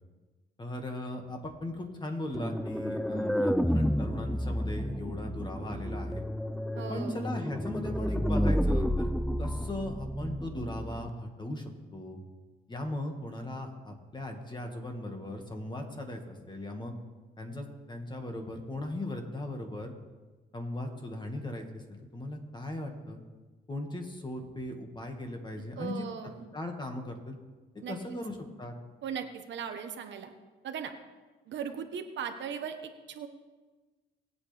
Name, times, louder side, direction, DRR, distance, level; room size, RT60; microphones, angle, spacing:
voice 1, 0.6-6.3 6.9-9.1 9.4-12.2 12.7-16.9 17.4-19.9 20.5-23.2 23.7-26.1 26.5-27.4 27.9-28.7, left 1 dB, 20° left, 3 dB, 2.0 m, -38 dB
sound 1, 2.3-11.1, equal, ahead, 0.4 m, -30 dB
voice 2, 6.7-7.2 25.8-26.5 27.8-28.0 29.0-30.3 30.6-30.9 31.5-33.3, right 7 dB, 65° right, 6 dB, 1.2 m, -38 dB
20.0 x 8.2 x 3.5 m, 1.3 s
cardioid pair, 90°, 20 cm